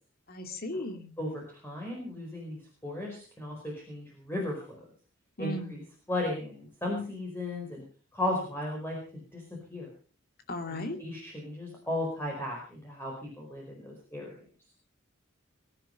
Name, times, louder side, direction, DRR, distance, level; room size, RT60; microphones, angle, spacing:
voice 1, 0.3-1.1 5.4-5.8 10.5-11.0, left 1 dB, 45° left, 6 dB, 2.6 m, -36 dB
voice 2, 1.2-4.8 5.4-5.8 6.1-7.8 8.1-9.0 9.3-9.4 9.7-9.9 10.7-14.4, left 1 dB, 10° left, -1 dB, 4.8 m, -35 dB
22.5 x 11.0 x 5.4 m, 0.41 s
head